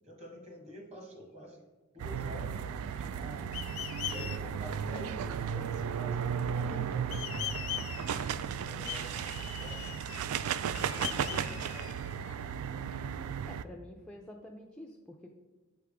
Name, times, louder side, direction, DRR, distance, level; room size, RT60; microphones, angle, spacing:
voice 1, 0.0-1.6 1.9-3.5 4.0-8.0 8.6-12.0, equal, 30° right, 2 dB, 1.3 m, -48 dB
sound 1, 2.0-13.6, right 7 dB, 90° right, 0.3 m, -35 dB
sound 2, 3.5-4.4 7.1-8.3 8.9-10.3 10.7-12.3, left 12 dB, 80° left, 0.5 m, -41 dB
voice 2, 13.5-15.3, left 1 dB, 5° left, 0 dB, 0.3 m, -48 dB
8.0 x 3.4 x 4.8 m, 1.2 s
head